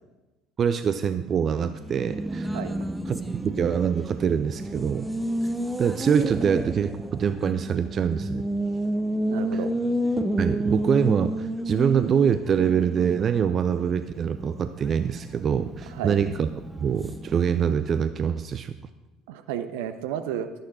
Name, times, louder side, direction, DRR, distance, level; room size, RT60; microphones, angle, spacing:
voice 1, 0.6-2.5 3.1-3.2 3.4-5.1 5.8-8.5 10.4-16.5 16.8-18.7, right 7 dB, 40° right, 11 dB, 0.4 m, -24 dB
Race car auto racing, 1.8-18.0, right 1 dB, 5° right, 0.8 m, -31 dB
voice 2, 9.3-9.7 15.9-16.2 19.3-20.5, right 10 dB, 65° right, 10 dB, 0.7 m, -32 dB
11.5 x 11.0 x 4.3 m, 1.1 s
figure-of-eight pair, 60°, 0 cm